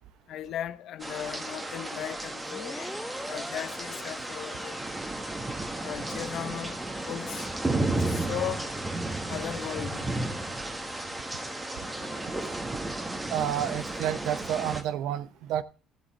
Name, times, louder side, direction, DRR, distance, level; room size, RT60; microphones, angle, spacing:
voice 1, 0.3-3.0 3.3-4.8 5.8-7.5 7.9-8.7 9.3-10.1, left 11 dB, 65° left, 0.7 m, -37 dB
sound 1, 1.0-14.8, right 2 dB, 15° right, 1.6 m, -33 dB
Organ, 2.4-13.2, left 4 dB, 40° left, 2.1 m, -49 dB
sound 2, 2.4-5.9, equal, ahead, 0.7 m, -43 dB
voice 2, 13.3-15.6, right 11 dB, 75° right, 0.7 m, -30 dB
13.5 x 8.2 x 4.2 m
cardioid pair, 110°, 0 cm